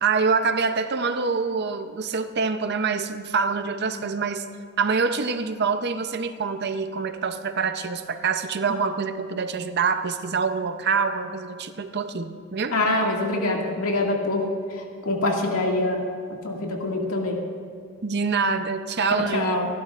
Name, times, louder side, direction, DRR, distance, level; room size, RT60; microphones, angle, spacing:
voice 1, 0.0-4.5 4.8-12.7 18.0-19.6, right 5 dB, 50° right, 9 dB, 0.6 m, -25 dB
voice 2, 12.7-16.0 16.4-17.4 19.3-19.7, left 2 dB, 80° left, -1 dB, 2.1 m, -25 dB
27.0 x 11.5 x 2.5 m, 2.2 s
head